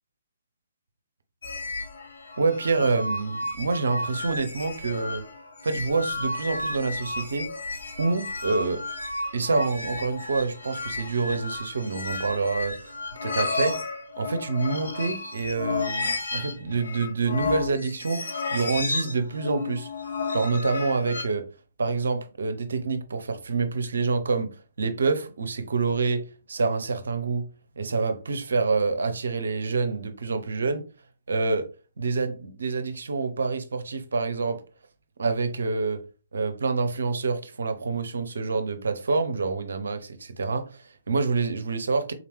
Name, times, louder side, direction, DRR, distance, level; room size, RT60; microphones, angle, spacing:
sound 1, 1.4-21.2, left 3 dB, 65° left, 1.0 m, -33 dB
voice 1, 2.4-5.2 5.6-7.5 8.0-8.8 9.3-18.2 18.5-19.9 20.3-21.4 21.8-27.5 27.8-30.8 31.3-31.7 32.0-34.6 35.2-36.0 36.3-42.1, right 4 dB, 60° right, 0.6 m, -27 dB
3.8 x 2.9 x 3.1 m
figure-of-eight pair, 125°, 0 cm